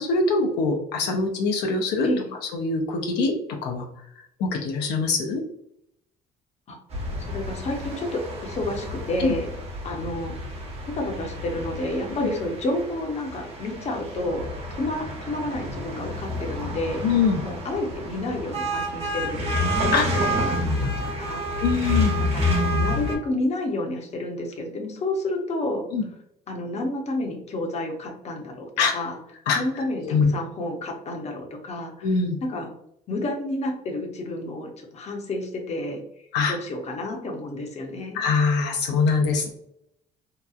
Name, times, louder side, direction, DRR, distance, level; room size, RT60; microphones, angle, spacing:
voice 1, 0.0-2.1 2.5-3.3 3.6-3.9 4.4-5.4 9.2-9.3 12.2-12.3 17.0-17.4 19.9-20.0 21.6-22.1 25.9-26.0 28.8-28.9 29.5-29.6 30.0-30.3 32.0-32.4 36.3-36.5 38.1-39.5, left 4 dB, 80° left, 2 dB, 0.5 m, -23 dB
sound 1, 6.9-23.2, left 1 dB, 35° right, 0.9 m, -29 dB
voice 2, 7.2-9.5 9.8-10.4 10.9-17.0 17.4-20.0 20.3-21.4 22.3-22.4 22.8-25.9 26.5-29.2 29.5-32.1 32.4-32.7 33.1-38.2, left 1 dB, 40° left, 2 dB, 0.7 m, -30 dB
2.8 x 2.3 x 2.3 m, 0.76 s
cardioid pair, 110°, 17 cm